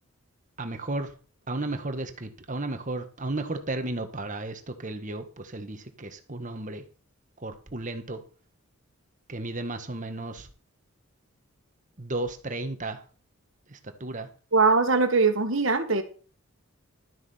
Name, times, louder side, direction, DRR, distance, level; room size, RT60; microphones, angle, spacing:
voice 1, 0.6-1.1 1.5-6.8 7.4-8.2 9.3-10.5 12.0-13.0 13.7-14.3, right 2 dB, 35° right, 8 dB, 1.4 m, -34 dB
voice 2, 14.5-16.0, right 4 dB, 60° right, 7 dB, 1.7 m, -21 dB
12.5 x 7.1 x 5.6 m, 0.38 s
head